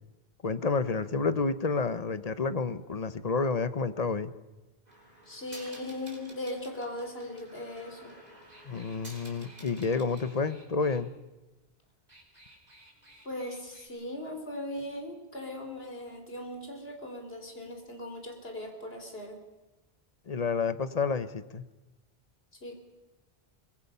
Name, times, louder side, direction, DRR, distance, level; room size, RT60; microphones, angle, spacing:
voice 1, 0.4-4.3 8.7-11.1 20.3-21.6, left 4 dB, 40° left, 13 dB, 0.9 m, -29 dB
sound 1, 4.9-11.0 11.9-13.9, right 1 dB, 40° right, 4.0 m, -52 dB
voice 2, 5.3-8.1 13.2-19.5 22.6-22.7, left 1 dB, 70° left, 4 dB, 3.6 m, -39 dB
24.0 x 20.5 x 5.6 m, 1.1 s
omnidirectional pair, 1.1 m